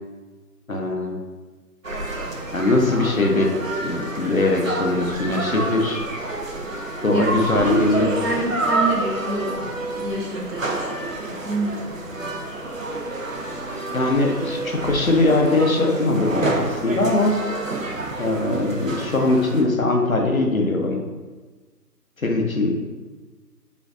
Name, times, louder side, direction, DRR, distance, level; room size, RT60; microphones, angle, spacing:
voice 1, 0.7-1.2 2.5-3.5 3.8-6.0 7.0-8.1 13.9-17.4 18.2-21.0 22.2-22.9, left 2 dB, 55° left, 2 dB, 0.6 m, -21 dB
sound 1, 1.8-19.6, right 2 dB, 55° right, 0.5 m, -28 dB
voice 2, 7.1-12.4, right 2 dB, 90° right, -3 dB, 1.4 m, -28 dB
5.1 x 2.5 x 2.4 m, 1.3 s
figure-of-eight pair, 175°, 49 cm